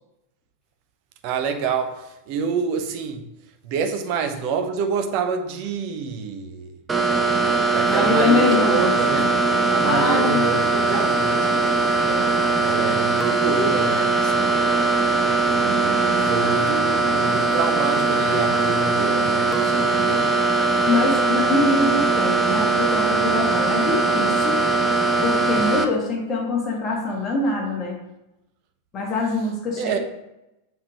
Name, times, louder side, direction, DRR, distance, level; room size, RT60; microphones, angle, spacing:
voice 1, 1.2-3.2 3.6-6.7 7.7-9.3 9.7-11.6 12.6-14.5 15.5-20.3 29.8-30.0, right 5 dB, 45° right, 7 dB, 0.8 m, -27 dB
sound 1, 6.9-25.9, right 3 dB, 15° right, 0.7 m, -20 dB
voice 2, 7.8-9.3 9.8-10.5 12.1-12.4 20.8-24.7 25.2-27.9 28.9-30.0, left 3 dB, 25° left, -2 dB, 1.4 m, -24 dB
7.3 x 5.1 x 3.0 m, 0.90 s
figure-of-eight pair, 90°, 0 cm